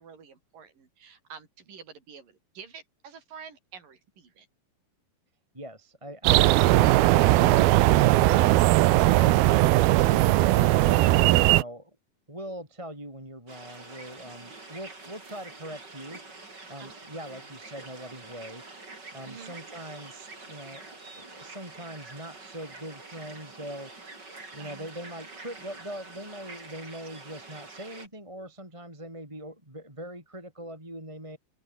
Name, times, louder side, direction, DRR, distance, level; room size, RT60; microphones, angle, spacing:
voice 1, 0.0-4.5 16.8-17.5 19.2-19.5 24.6-24.9, right 6 dB, 60° right, 6.5 m, -48 dB
voice 2, 5.5-8.6 12.3-16.2 16.7-18.6 19.1-23.9 24.5-31.4, right 1 dB, 10° right, 4.5 m, -42 dB
sound 1, 6.2-11.6, right 17 dB, 80° right, 2.7 m, -19 dB
sound 2, 13.5-28.1, right 3 dB, 25° right, 5.2 m, -46 dB
open air
omnidirectional pair, 4.5 m